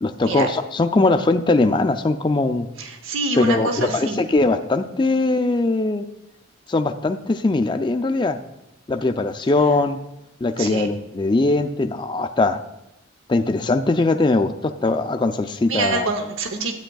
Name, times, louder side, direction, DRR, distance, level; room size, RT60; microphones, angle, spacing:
voice 1, 0.0-2.7 3.4-6.1 6.7-8.4 8.9-10.0 10.4-12.6 13.3-16.1, left 2 dB, 20° left, 7 dB, 0.3 m, -20 dB
voice 2, 2.8-4.2 10.6-10.9 15.7-16.8, right 3 dB, 70° right, 6 dB, 0.8 m, -25 dB
12.5 x 8.8 x 2.3 m, 0.90 s
head